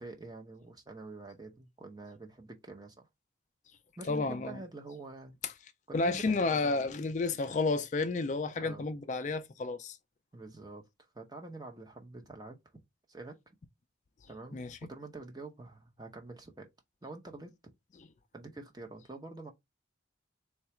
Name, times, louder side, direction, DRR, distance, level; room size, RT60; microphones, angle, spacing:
voice 1, 0.0-3.1 4.0-5.3 5.9-6.9 8.6-8.9 10.3-10.8 11.1-12.6 13.1-13.4 14.3-16.7 17.0-17.5 18.3-19.5, right 2 dB, 20° right, 0.8 m, -46 dB
voice 2, 4.1-4.6 5.4-5.5 5.9-10.0 14.5-14.8, left 3 dB, 40° left, 0.3 m, -31 dB
3.9 x 2.3 x 4.3 m
head